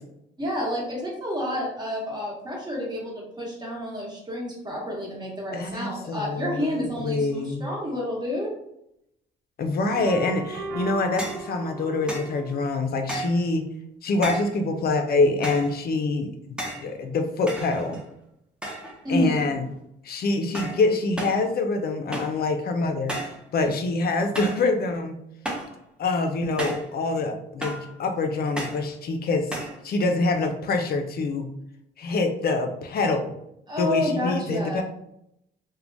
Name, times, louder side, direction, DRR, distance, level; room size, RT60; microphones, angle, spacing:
voice 1, 0.4-8.5 19.0-19.6 33.7-34.8, left 1 dB, 20° right, -3 dB, 1.1 m, -29 dB
voice 2, 5.5-7.6 9.6-13.7 14.0-18.0 19.1-19.7 20.0-23.1 23.5-25.2 26.0-29.5 29.8-31.5 32.0-33.3 33.8-34.8, left 3 dB, 50° left, 6 dB, 0.4 m, -25 dB
sound 1, 9.8-12.6, right 4 dB, 90° right, 0.5 m, -36 dB
sound 2, 11.2-11.5 12.1-12.4 13.1-13.4 14.2-14.6 15.4-15.8 16.6-16.9 17.5-18.1 18.6-19.0 19.3-19.8 20.5-20.8 21.2-21.4 22.1-22.4 23.1-23.4 24.3-24.7 25.4-25.8 26.6-26.9 27.6-27.9 28.6-28.9 29.5-29.8, right 1 dB, 5° right, 0.5 m, -33 dB
3.0 x 2.1 x 2.5 m, 0.79 s
cardioid pair, 90°, 20 cm